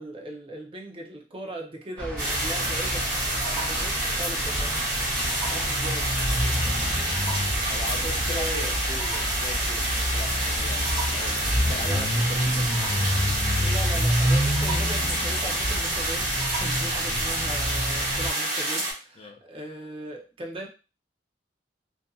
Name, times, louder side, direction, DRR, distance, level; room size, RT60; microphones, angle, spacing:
voice 1, 0.0-3.1 3.4-4.7 5.4-6.1 8.0-8.7 11.8-12.1 13.6-20.7, right 1 dB, 30° right, 0.6 m, -38 dB
sound 1, 2.0-18.3, equal, 5° left, 0.7 m, -28 dB
sound 2, 2.2-18.9, right 1 dB, 45° right, 1.3 m, -28 dB
voice 2, 7.7-12.9 13.5-13.6 19.2-19.4, left 3 dB, 35° left, 0.4 m, -40 dB
2.6 x 2.5 x 2.3 m
head